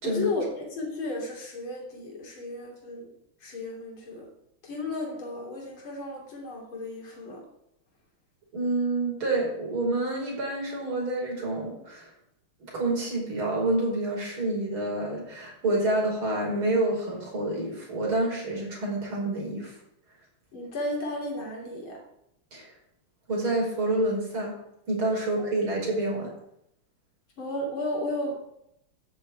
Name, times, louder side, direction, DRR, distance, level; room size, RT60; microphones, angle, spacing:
voice 1, 0.0-3.1 3.4-4.3 4.6-7.4 20.5-22.0 27.4-28.4, left 2 dB, 75° left, -1 dB, 3.9 m, -33 dB
voice 2, 8.5-12.1 12.7-19.7 22.5-22.7 23.3-24.5 24.9-26.3, right 2 dB, 80° right, -2 dB, 6.0 m, -28 dB
12.5 x 7.1 x 8.7 m, 0.79 s
omnidirectional pair, 2.3 m